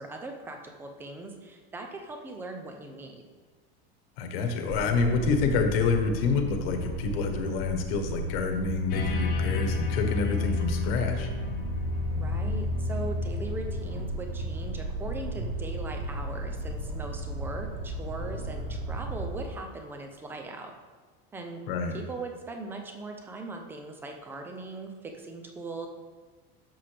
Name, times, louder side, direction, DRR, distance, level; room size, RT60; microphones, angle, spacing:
voice 1, 0.0-3.2 12.0-20.7 21.3-21.6 21.9-25.9, right 2 dB, 5° right, 4 dB, 0.5 m, -40 dB
voice 2, 4.2-11.3 21.7-21.9, left 4 dB, 75° left, 5 dB, 1.3 m, -27 dB
sound 1, 4.7-19.5, right 2 dB, 75° right, 1.6 m, -35 dB
sound 2, 8.9-14.6, left 5 dB, 30° left, 0.8 m, -31 dB
10.5 x 7.0 x 3.4 m, 1.4 s
cardioid pair, 180°, 29 cm